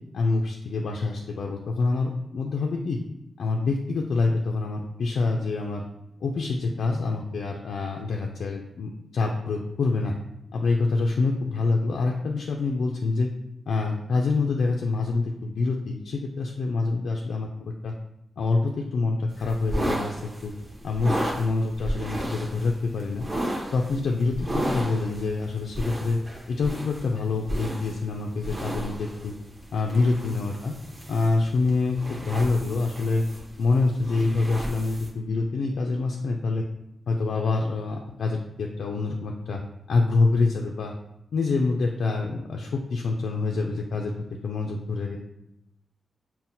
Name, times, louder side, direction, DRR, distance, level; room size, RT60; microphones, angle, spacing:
voice 1, 0.1-3.0 3.4-5.8 6.2-10.1 10.5-13.3 13.7-17.9 18.4-20.2 20.4-20.5 20.8-23.3 23.7-26.2 26.5-29.3 29.7-30.7 31.1-33.2 33.6-36.7 37.1-39.6 39.9-40.9 41.3-45.2, left 3 dB, 80° left, 1 dB, 0.3 m, -26 dB
sound 1, 19.3-35.1, right 1 dB, 20° right, 0.7 m, -34 dB
5.7 x 2.1 x 2.6 m, 0.85 s
wide cardioid pair, 145°, 0 cm